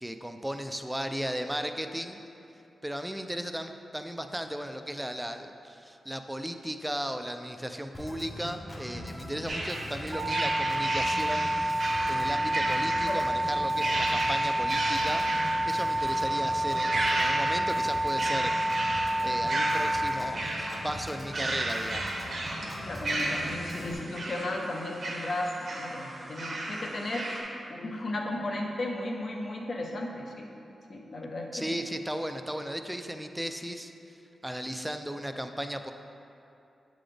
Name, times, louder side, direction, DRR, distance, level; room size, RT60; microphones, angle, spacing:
voice 1, 0.0-2.2 2.8-15.2 15.6-18.8 19.2-22.1 31.5-33.9 34.4-35.9, equal, 5° right, 6 dB, 0.3 m, -35 dB
Organ, 7.9-23.9, left 1 dB, 30° left, 0.9 m, -41 dB
sound 1, 9.5-27.4, right 1 dB, 65° right, 0.9 m, -34 dB
sound 2, 10.1-20.1, right 1 dB, 40° right, 0.7 m, -29 dB
voice 2, 22.6-30.5 30.9-31.8, left 1 dB, 60° left, 0 dB, 0.7 m, -35 dB
7.5 x 3.9 x 3.3 m, 2.7 s
cardioid pair, 75°, 0 cm